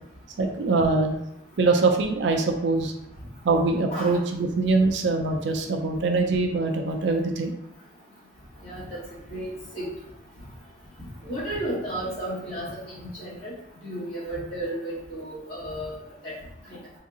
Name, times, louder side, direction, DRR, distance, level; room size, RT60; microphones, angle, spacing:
voice 1, 0.4-1.2 1.6-2.9 3.4-7.5, right 3 dB, 75° right, 4 dB, 0.4 m, -23 dB
voice 2, 8.6-9.0 9.3-9.9 11.0-13.5 13.8-16.0 16.2-16.3 16.7-16.8, right 1 dB, 30° left, -9 dB, 1.4 m, -33 dB
2.9 x 2.6 x 3.6 m, 0.84 s
head